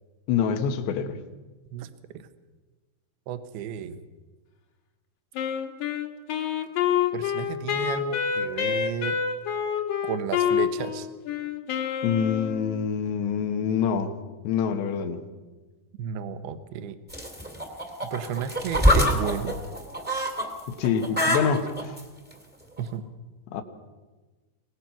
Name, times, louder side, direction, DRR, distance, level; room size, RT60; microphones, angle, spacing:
voice 1, 0.3-1.2 12.0-14.1 14.5-15.2 20.7-21.9 23.5-23.6, left 7 dB, 90° left, 6 dB, 3.5 m, -26 dB
voice 2, 1.7-2.3 3.3-4.0 7.1-9.2 10.0-11.1 16.0-17.0 18.1-19.5 22.8-23.0, right 8 dB, 75° right, 10 dB, 2.9 m, -33 dB
Wind instrument woodwind instrument, 5.3-12.8, left 8 dB, 60° left, 2.3 m, -27 dB
sound 1, 17.1-20.5 20.8-22.0 22.8-22.9, equal, 5° right, 1.2 m, -24 dB
24.0 x 18.5 x 5.9 m, 1.2 s
omnidirectional pair, 4.9 m